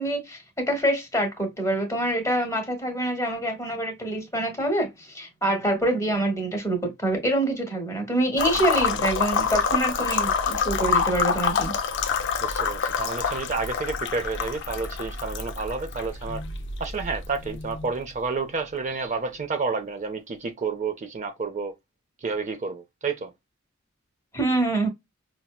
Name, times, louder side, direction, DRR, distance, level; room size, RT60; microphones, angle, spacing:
voice 1, 0.0-11.7 24.3-24.9, right 1 dB, 15° left, 1.1 m, -26 dB
sound 1, 8.4-18.1, left 6 dB, 60° left, 0.5 m, -27 dB
voice 2, 12.4-16.4 16.8-21.7 22.2-23.3, right 4 dB, 35° right, 0.5 m, -30 dB
5.5 x 2.1 x 2.3 m
head